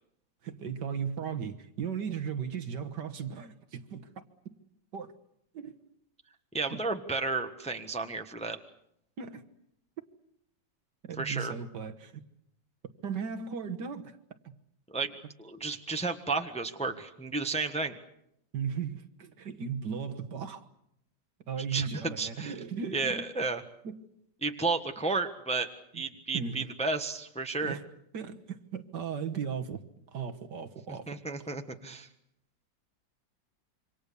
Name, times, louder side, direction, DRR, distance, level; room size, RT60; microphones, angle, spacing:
voice 1, 0.4-4.1 4.9-5.1 5.5-5.8 6.7-6.9 9.2-9.4 11.0-12.2 13.0-14.2 14.4-14.5 18.5-20.7 21.5-23.3 23.8-24.0 25.9-26.0 26.3-26.7 27.6-27.8 28.1-29.8 30.1-31.2, right 6 dB, 65° right, 1.9 m, -36 dB
voice 2, 6.5-8.6 11.2-11.5 14.9-15.1 15.4-18.0 21.7-22.5 22.9-23.6 24.4-25.7 25.9-27.8 31.1-32.1, right 3 dB, 5° left, 1.1 m, -32 dB
27.0 x 25.0 x 7.0 m
omnidirectional pair, 2.0 m